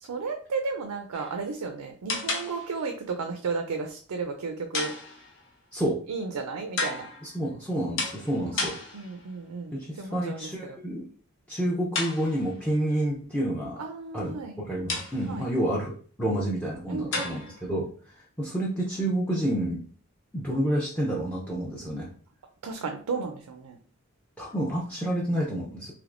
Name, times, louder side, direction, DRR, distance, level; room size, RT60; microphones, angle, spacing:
voice 1, 0.0-4.9 6.1-7.1 8.5-10.8 13.8-14.6 15.2-15.5 16.9-17.4 22.6-23.8, right 4 dB, 85° right, 4 dB, 0.4 m, -34 dB
sound 1, 1.1-1.5 2.1-2.9 4.7-5.5 6.8-7.4 8.0-9.3 11.9-12.7 14.9-15.5 17.1-17.7, left 3 dB, 55° left, 0.7 m, -33 dB
voice 2, 7.2-8.8 9.7-11.0 11.5-13.9 14.1-14.4 14.6-19.8 20.3-22.1 24.4-25.9, right 1 dB, 5° left, -3 dB, 0.4 m, -29 dB
3.3 x 3.0 x 2.5 m, 0.43 s
head